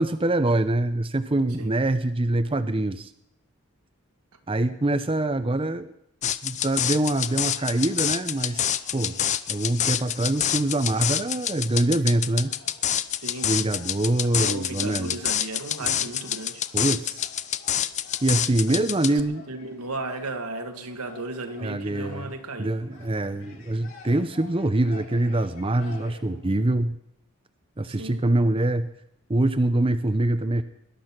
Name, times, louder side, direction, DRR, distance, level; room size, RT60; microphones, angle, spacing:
voice 1, 0.0-3.1 4.5-5.9 6.4-9.2 9.5-12.5 13.4-15.1 15.8-16.0 16.7-17.2 18.2-19.4 21.6-22.3 22.6-26.9 27.8-28.9 29.3-30.6, right 2 dB, 25° right, 10 dB, 0.7 m, -24 dB
sound 1, 6.2-19.2, left 10 dB, 30° left, 0.5 m, -27 dB
sound 2, 7.1-26.7, left 3 dB, 60° left, 5.8 m, -51 dB
voice 2, 13.2-13.7 14.2-16.6 18.7-19.2 19.5-22.8 27.8-28.2, right 2 dB, 85° right, 6 dB, 1.9 m, -35 dB
20.5 x 11.5 x 6.0 m, 0.74 s
head